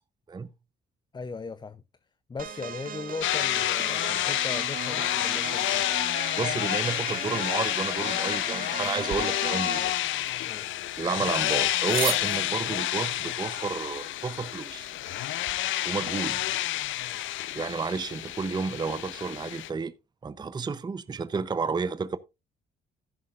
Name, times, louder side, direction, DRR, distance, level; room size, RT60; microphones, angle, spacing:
voice 1, 1.1-1.8 2.3-5.9 10.4-10.8, left 4 dB, 20° left, 0.5 m, -38 dB
sound 1, 2.4-10.0, right 6 dB, 45° right, 1.5 m, -38 dB
sound 2, 3.2-19.7, left 14 dB, 75° left, 0.6 m, -29 dB
voice 2, 6.3-9.9 11.0-14.9 15.8-16.4 17.5-19.9 20.2-22.2, right 5 dB, 20° right, 0.6 m, -31 dB
sound 3, 9.1-15.6, right 11 dB, 80° right, 1.0 m, -40 dB
11.0 x 10.5 x 2.4 m
cardioid pair, 90°, 20 cm